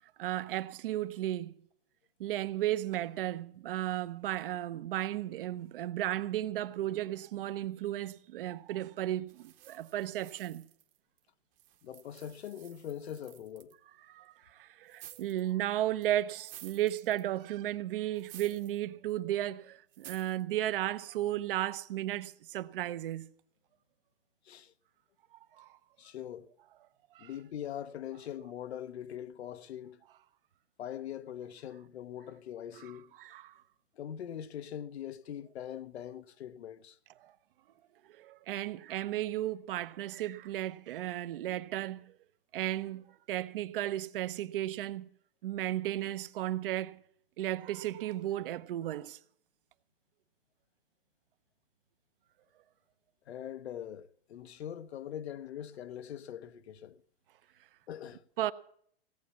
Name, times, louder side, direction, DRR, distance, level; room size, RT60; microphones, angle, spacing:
voice 1, 0.2-1.5 2.2-10.6 14.1-23.3 25.6-25.7 27.1-27.3 33.2-33.5 37.2-37.3 38.2-42.1 42.5-45.1 45.4-47.0 47.4-49.2 58.4-58.5, right 13 dB, 60° right, 0.8 m, -34 dB
sound 1, 9.3-11.2 11.6-13.7 14.9-15.5 16.0-17.4 18.2-18.8 19.1-19.2 19.9-20.4, right 12 dB, 25° right, 1.0 m, -53 dB
voice 2, 11.8-13.7 24.4-24.7 26.0-26.5 27.2-30.0 30.8-33.1 34.0-37.0 53.3-57.0 57.9-58.2, left 10 dB, 85° left, 1.0 m, -42 dB
17.0 x 8.5 x 7.0 m
hypercardioid pair, 155°, 31 cm